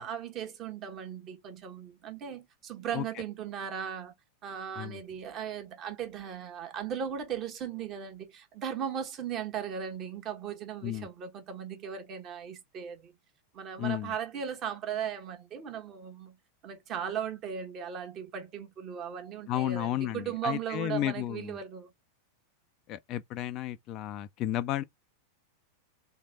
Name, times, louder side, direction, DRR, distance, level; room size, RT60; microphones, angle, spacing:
voice 1, 0.0-4.1 4.4-13.1 13.5-16.4 16.6-21.9, right 8 dB, 35° right, 1.3 m, -37 dB
voice 2, 13.8-14.1 19.5-21.6 22.9-24.8, left 13 dB, 35° left, 0.4 m, -33 dB
3.3 x 3.2 x 4.0 m
figure-of-eight pair, 90°, 0 cm